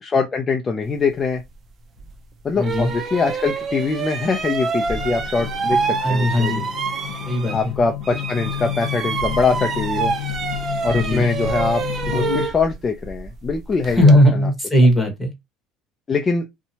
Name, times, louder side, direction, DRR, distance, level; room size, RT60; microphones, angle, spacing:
voice 1, 0.0-1.4 2.4-6.6 7.5-10.1 10.8-14.2 16.1-16.4, left 4 dB, 25° left, 0.4 m, -23 dB
sound 1, 2.0-2.1 2.6-7.8 8.0-14.2, right 5 dB, 40° right, 0.5 m, -27 dB
voice 2, 2.5-2.9 6.0-6.7 7.2-7.7 10.9-11.2 13.9-15.3, equal, 5° left, 1.2 m, -17 dB
sound 2, 4.8-12.5, left 12 dB, 90° left, 0.5 m, -30 dB
2.8 x 2.1 x 2.7 m
cardioid pair, 115°, 0 cm